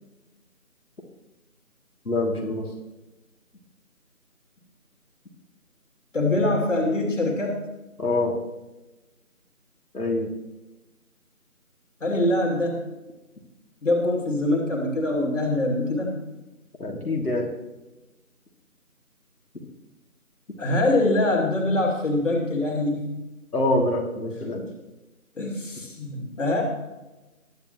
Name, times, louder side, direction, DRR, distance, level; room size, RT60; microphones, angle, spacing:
voice 1, 2.0-2.7 8.0-8.3 9.9-10.3 16.8-17.5 23.5-24.6, left 2 dB, 80° left, 0 dB, 2.9 m, -25 dB
voice 2, 6.1-7.6 12.0-12.8 13.8-16.2 20.6-23.1 25.4-26.6, left 2 dB, 55° left, 0 dB, 2.9 m, -24 dB
21.5 x 8.3 x 3.1 m, 1.1 s
figure-of-eight pair, 175°, 44 cm